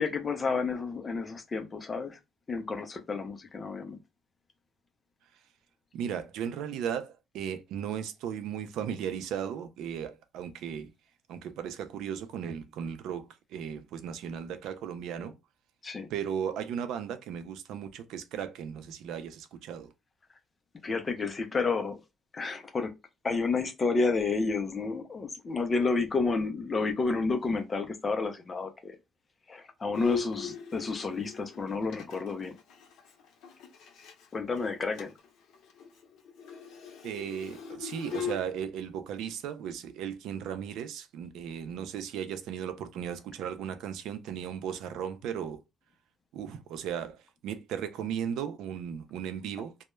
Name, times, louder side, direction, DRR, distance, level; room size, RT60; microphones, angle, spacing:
voice 1, 0.0-2.2 2.5-4.0 15.8-16.1 20.8-22.0 22.3-22.9 23.2-29.0 29.5-32.6 34.3-35.1, left 4 dB, 25° left, 0.4 m, -30 dB
voice 2, 5.9-10.9 11.3-15.3 16.1-19.9 37.0-45.6 46.3-49.8, right 8 dB, 80° right, 0.4 m, -36 dB
Bowed string instrument, 29.9-34.3 34.6-34.7 34.9-35.3 35.5-38.4, left 7 dB, 85° left, 0.6 m, -39 dB
2.2 x 2.0 x 2.9 m
cardioid pair, 160°, 0 cm